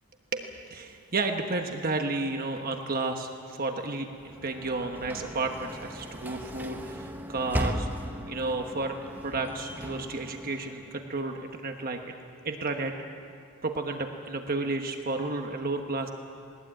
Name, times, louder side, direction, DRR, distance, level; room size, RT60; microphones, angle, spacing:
voice 1, 0.3-7.9 8.3-12.2 12.4-12.9 13.6-16.1, right 3 dB, 40° right, 4 dB, 1.2 m, -32 dB
Sliding door / Slam, 4.1-11.1, equal, 10° right, 1.0 m, -37 dB
20.0 x 20.0 x 9.0 m, 2.4 s
head